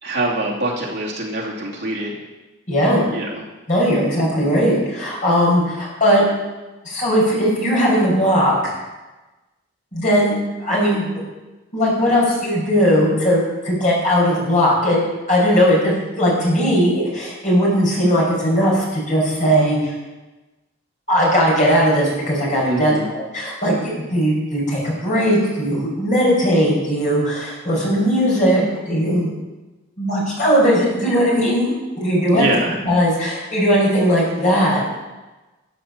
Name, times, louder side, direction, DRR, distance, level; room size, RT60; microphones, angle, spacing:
voice 1, 0.0-2.2 3.1-3.4 22.6-23.1 32.3-32.8, right 1 dB, 60° right, -3 dB, 2.6 m, -24 dB
voice 2, 2.7-3.0 3.7-6.2 6.8-8.7 9.9-11.1 11.7-15.0 15.3-19.9 21.1-29.3 30.0-32.4 32.8-34.8, equal, 40° left, -4 dB, 5.2 m, -18 dB
13.0 x 8.0 x 7.2 m, 1.1 s
head